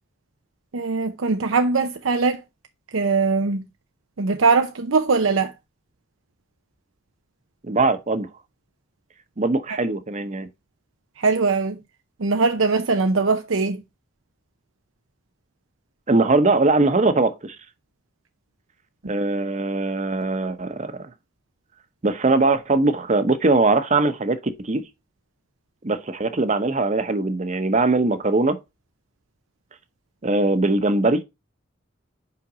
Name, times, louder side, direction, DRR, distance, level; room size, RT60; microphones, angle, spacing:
voice 1, 0.7-2.4 2.9-3.7 4.2-5.5 11.2-11.8 12.2-13.8, right 4 dB, 90° right, 0.7 m, -21 dB
voice 2, 7.6-8.3 9.4-10.5 16.1-17.6 19.1-20.9 22.0-24.4 24.6-24.8 25.8-28.6 30.2-31.2, right 3 dB, 40° right, 0.9 m, -21 dB
5.7 x 5.1 x 5.0 m
head